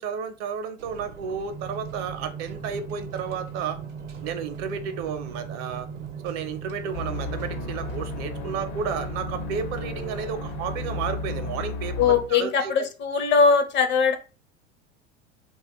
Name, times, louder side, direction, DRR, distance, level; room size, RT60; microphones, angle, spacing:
voice 1, 0.0-3.8 4.2-5.9 6.2-11.9 12.3-12.7, right 6 dB, 50° right, 8 dB, 0.6 m, -32 dB
sound 1, 0.8-8.2, right 5 dB, 90° right, 0.7 m, -44 dB
sound 2, 1.5-11.5, right 7 dB, 15° right, 0.3 m, -39 dB
sound 3, 6.9-12.4, left 3 dB, 65° left, 0.8 m, -34 dB
voice 2, 12.0-14.2, left 5 dB, 35° left, 8 dB, 0.5 m, -21 dB
2.9 x 2.3 x 2.9 m, 0.34 s
hypercardioid pair, 85°, 34 cm